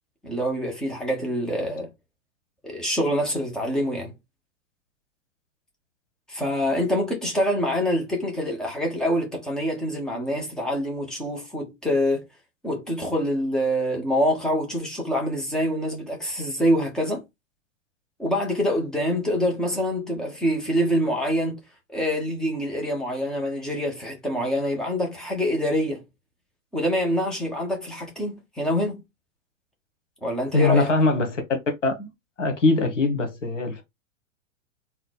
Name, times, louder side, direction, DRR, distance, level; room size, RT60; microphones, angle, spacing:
voice 1, 0.2-1.9 2.6-4.1 6.3-12.2 12.6-17.2 18.2-21.6 21.9-26.0 26.7-29.0 30.2-30.9, equal, ahead, 0.4 m, -25 dB
voice 2, 30.5-31.4 31.8-32.1 32.4-33.8, left 3 dB, 65° left, 1.3 m, -22 dB
3.7 x 2.0 x 4.2 m
figure-of-eight pair, 105°, 39 cm